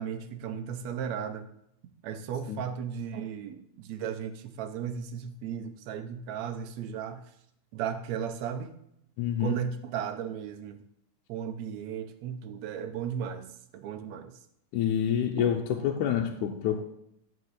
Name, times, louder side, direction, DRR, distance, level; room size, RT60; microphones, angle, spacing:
voice 1, 0.0-1.5 2.0-7.2 7.7-8.7 9.4-10.8 11.3-13.5 13.7-14.4 15.4-15.5 15.8-16.1 16.4-16.8, right 8 dB, 70° right, 8 dB, 2.1 m, -35 dB
voice 2, 9.2-9.5 14.7-16.8, left 9 dB, 90° left, 1 dB, 2.3 m, -27 dB
14.0 x 5.3 x 8.1 m, 0.75 s
omnidirectional pair, 3.4 m